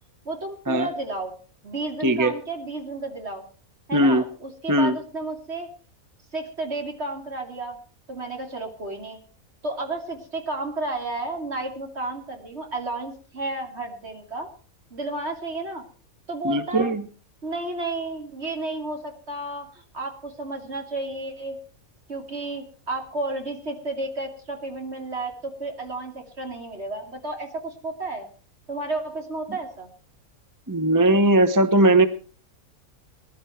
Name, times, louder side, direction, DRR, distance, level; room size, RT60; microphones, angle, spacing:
voice 1, 0.2-1.3 1.6-3.4 3.9-5.7 6.3-7.8 8.1-9.2 9.6-14.5 14.9-15.8 16.3-16.9 17.4-21.6 22.1-28.3 28.7-29.9, right 2 dB, 45° right, 4 dB, 3.0 m, -32 dB
voice 2, 2.0-2.3 3.9-4.2 4.7-5.0 16.4-17.0 30.7-32.1, right 1 dB, 15° right, 10 dB, 0.8 m, -19 dB
20.0 x 11.5 x 4.5 m, 0.39 s
omnidirectional pair, 1.5 m